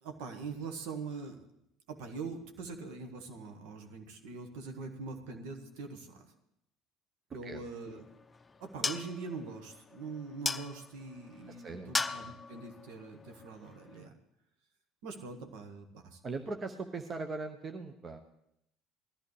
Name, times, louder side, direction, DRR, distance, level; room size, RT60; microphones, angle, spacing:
voice 1, 0.0-1.5 1.9-6.3 7.3-8.1 8.6-14.1 15.0-16.2, right 4 dB, 60° right, 5 dB, 1.7 m, -43 dB
voice 2, 7.3-7.6 11.6-11.9 16.2-18.2, right 3 dB, 30° right, 6 dB, 1.1 m, -39 dB
sound 1, 7.6-14.1, left 4 dB, 20° left, 0.6 m, -40 dB
20.5 x 14.0 x 3.4 m, 0.80 s
figure-of-eight pair, 60°, 0 cm